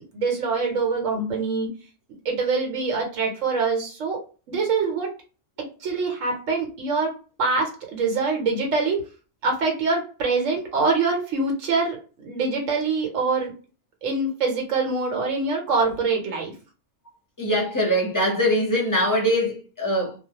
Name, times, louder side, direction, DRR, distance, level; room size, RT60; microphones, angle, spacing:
voice 1, 0.1-1.7 2.2-4.2 4.5-5.1 5.8-7.1 7.4-9.0 9.4-13.5 14.0-16.5, right 4 dB, 80° right, 1.1 m, -24 dB
voice 2, 17.4-20.1, equal, 20° left, 0.6 m, -22 dB
2.3 x 2.1 x 2.7 m
omnidirectional pair, 1.3 m